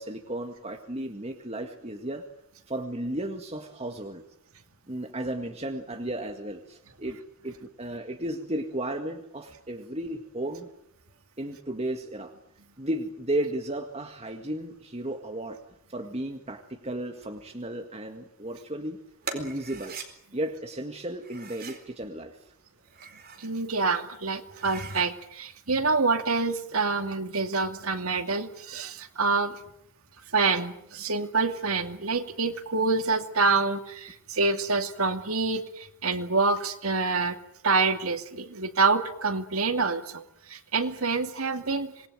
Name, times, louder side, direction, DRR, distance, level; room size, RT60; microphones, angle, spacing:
voice 1, 0.0-2.2 2.7-4.2 4.9-7.2 7.4-10.7 11.4-12.3 12.8-15.6 15.9-19.0 19.3-20.0 20.3-22.5, right 1 dB, 30° right, 5 dB, 1.9 m, -34 dB
sound 1, 19.2-20.1 21.2-21.9 22.8-23.5 24.0-24.1 24.4-25.1, right 5 dB, 45° right, 4.4 m, -41 dB
voice 2, 23.4-29.6 30.3-37.4 37.6-41.9, right 4 dB, 85° right, 7 dB, 2.5 m, -27 dB
26.5 x 20.5 x 9.3 m, 0.75 s
head